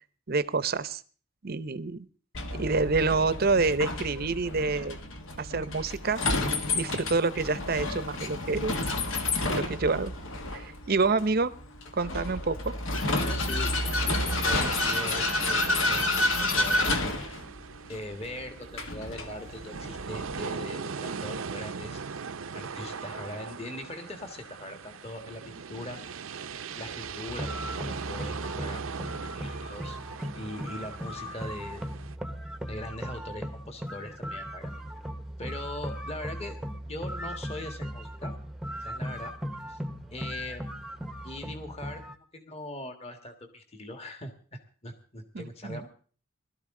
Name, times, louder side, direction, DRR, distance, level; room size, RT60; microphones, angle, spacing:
voice 1, 0.3-1.0 1.4-2.1 2.5-5.0 5.4-6.2 6.7-8.7 9.5-10.1 10.5-11.5 11.9-12.7 45.3-45.8, right 3 dB, 45° right, 15 dB, 0.7 m, -27 dB
Vehicle, 2.3-20.4, left 2 dB, 70° left, 1.6 m, -30 dB
voice 2, 13.1-13.7 14.2-16.9 17.9-22.0 22.5-26.0 26.5-28.8 29.2-30.0 30.3-31.8 32.7-34.7 35.4-36.6 36.9-38.3 38.8-39.3 39.7-39.8 40.1-40.7 41.2-45.9, left 1 dB, 30° left, 6 dB, 1.7 m, -41 dB
sound 1, 13.7-32.2, right 5 dB, 80° right, 0.7 m, -39 dB
sound 2, 27.3-42.2, equal, ahead, 0.9 m, -38 dB
20.0 x 13.0 x 3.8 m, 0.41 s
head